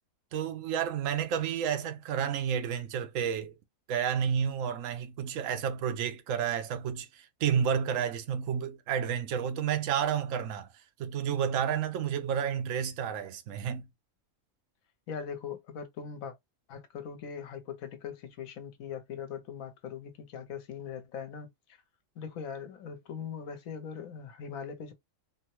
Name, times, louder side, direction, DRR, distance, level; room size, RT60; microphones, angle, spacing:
voice 1, 0.3-3.5 3.9-10.7 11.0-13.9, right 8 dB, 75° right, 1.0 m, -31 dB
voice 2, 15.1-16.3 16.7-21.8 22.2-24.9, left 7 dB, 80° left, 1.2 m, -41 dB
3.5 x 2.2 x 2.9 m
omnidirectional pair, 1.4 m